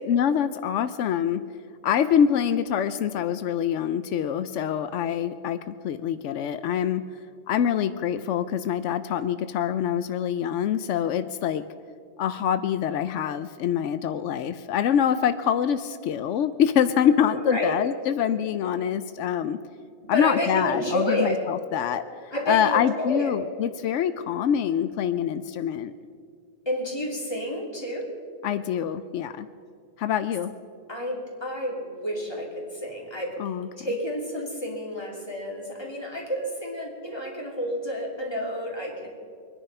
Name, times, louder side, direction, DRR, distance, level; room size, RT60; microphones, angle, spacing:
voice 1, 0.1-1.4 1.8-7.0 7.5-11.6 12.2-19.6 20.1-25.9 28.4-29.5 30.0-30.5 33.4-33.7, left 9 dB, 85° left, 12 dB, 0.9 m, -25 dB
voice 2, 17.3-17.8 20.1-21.4 22.3-23.3 26.6-28.1 30.9-33.4 33.8-39.1, equal, 20° left, -2 dB, 2.9 m, -30 dB
24.0 x 10.0 x 5.5 m, 2.1 s
omnidirectional pair, 1.2 m